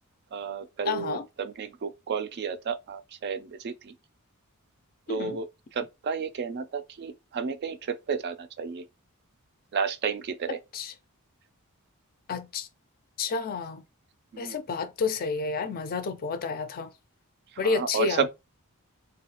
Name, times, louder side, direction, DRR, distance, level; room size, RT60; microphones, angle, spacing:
voice 1, 0.3-3.9 5.1-5.5 5.7-8.8 9.7-10.6 14.3-14.6 17.6-18.3, right 6 dB, 50° right, 0.3 m, -32 dB
voice 2, 0.9-1.2 5.1-5.4 10.7-10.9 12.3-12.7 13.2-13.8 14.4-16.9 17.6-18.3, left 4 dB, 40° left, 0.4 m, -30 dB
3.1 x 2.3 x 2.8 m
head